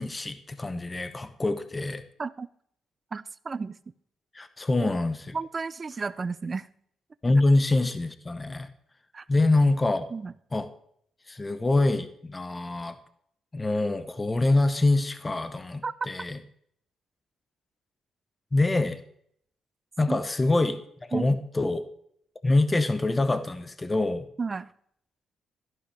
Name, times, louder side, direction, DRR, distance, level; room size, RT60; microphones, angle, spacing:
voice 1, 0.0-2.0 4.3-5.4 7.2-8.7 9.3-10.1 10.5-10.7 11.3-13.0 13.5-16.4 18.5-19.0 20.0-20.8 21.1-21.9 22.4-24.3, left 2 dB, 20° left, 11 dB, 0.9 m, -25 dB
voice 2, 3.1-3.8 4.8-4.9 5.3-6.7 9.1-9.2 10.1-10.3 15.8-15.9 20.1-20.2 21.1-21.2 24.4-24.7, right 4 dB, 35° right, 17 dB, 0.5 m, -32 dB
13.0 x 11.0 x 3.3 m, 0.68 s
cardioid pair, 90°, 0 cm